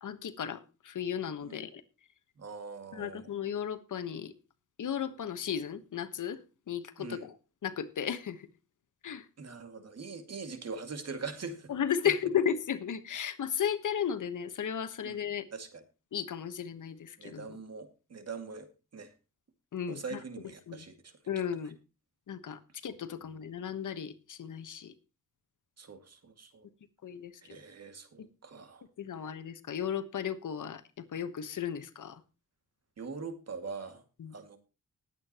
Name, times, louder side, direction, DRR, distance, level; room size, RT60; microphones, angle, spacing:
voice 1, 0.0-1.8 2.9-4.3 4.8-6.4 6.7-7.3 7.6-8.5 9.0-9.3 11.7-15.4 16.1-17.5 19.7-20.2 20.7-20.8 21.3-21.8 22.3-24.9 27.0-27.3 28.2-28.3 29.0-32.2 34.2-34.3, left 8 dB, 70° left, 11 dB, 1.3 m, -35 dB
voice 2, 2.4-3.3 7.0-7.3 9.4-11.7 15.0-15.1 15.5-15.8 17.2-19.1 19.9-21.2 25.8-26.7 27.4-28.8 33.0-34.0 34.3-34.6, right 4 dB, 50° right, 8 dB, 2.3 m, -42 dB
20.0 x 8.7 x 3.0 m, 0.30 s
wide cardioid pair, 115°, 32 cm